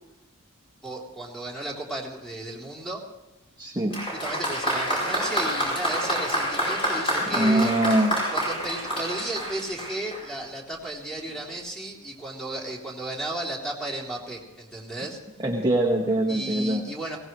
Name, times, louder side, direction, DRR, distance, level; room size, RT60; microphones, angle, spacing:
voice 1, 0.8-3.0 4.2-7.7 8.3-15.2 16.3-17.2, right 2 dB, ahead, -3 dB, 3.5 m, -34 dB
voice 2, 3.6-4.0 7.3-8.1 15.4-16.8, right 1 dB, 15° right, -4 dB, 1.7 m, -23 dB
Applause, 3.9-10.4 11.3-11.4, equal, 25° left, 7.4 m, -28 dB
22.0 x 18.5 x 3.2 m, 1.0 s
head